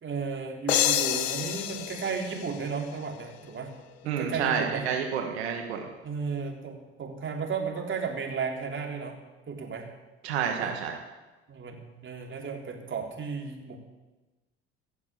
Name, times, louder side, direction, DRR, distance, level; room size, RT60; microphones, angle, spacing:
voice 1, 0.0-3.7 4.0-4.9 6.0-9.2 9.5-9.9 10.5-10.7 11.5-13.8, right 5 dB, 40° right, 1 dB, 3.4 m, -34 dB
sound 1, 0.7-3.4, left 11 dB, 90° left, 0.7 m, -29 dB
voice 2, 4.0-5.9 10.2-10.9, right 7 dB, 90° right, 2 dB, 1.5 m, -29 dB
16.0 x 7.2 x 8.5 m, 1.1 s
hypercardioid pair, 65°, 31 cm